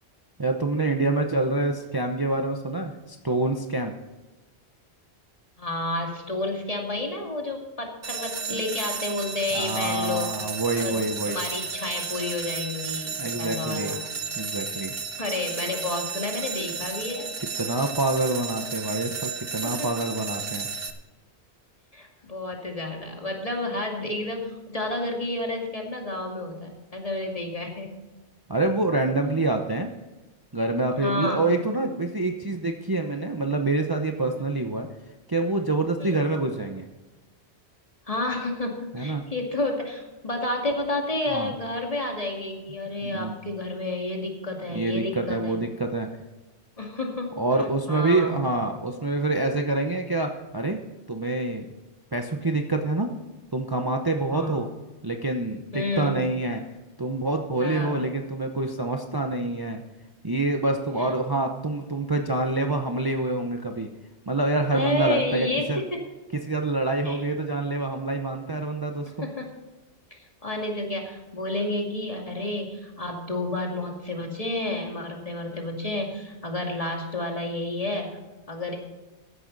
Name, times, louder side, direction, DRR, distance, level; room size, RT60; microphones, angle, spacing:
voice 1, 0.4-3.9 8.5-8.6 9.5-11.4 13.2-14.0 14.4-14.9 17.6-20.7 28.5-29.9 30.5-34.9 35.3-36.9 38.9-39.2 41.3-41.5 43.0-43.3 44.7-46.1 47.4-50.8 51.1-51.7 52.1-53.1 53.5-54.7 55.0-56.6 57.0-59.8 60.2-63.9 64.3-65.8 66.3-69.3, right 2 dB, 20° right, 3 dB, 0.9 m, -26 dB
voice 2, 5.6-10.3 10.8-11.0 11.3-14.0 15.2-17.3 19.6-19.9 21.9-28.0 31.0-31.5 36.0-36.2 38.1-45.6 46.8-47.4 47.9-48.3 54.3-54.6 55.7-56.2 57.6-58.0 61.0-61.1 64.7-66.0 67.0-67.2 69.2-69.5 70.4-78.2 78.5-78.8, left 2 dB, 30° left, 0 dB, 2.5 m, -30 dB
sound 1, 8.0-20.9, right 5 dB, 60° right, 1.5 m, -33 dB
15.0 x 11.0 x 4.1 m, 1.1 s
omnidirectional pair, 1.1 m